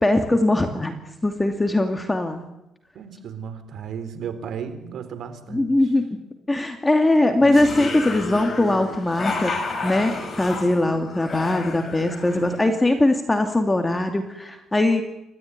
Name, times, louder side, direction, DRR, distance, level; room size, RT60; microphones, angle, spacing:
voice 1, 0.0-2.5 5.5-6.1 6.5-9.5 9.8-15.0, left 2 dB, 15° left, 5 dB, 2.7 m, -21 dB
voice 2, 2.9-5.7, right 7 dB, 65° right, 11 dB, 3.8 m, -34 dB
sound 1, 7.4-12.9, left 3 dB, 30° left, 6.1 m, -31 dB
28.5 x 14.0 x 9.8 m, 0.88 s
cardioid pair, 95°, 0 cm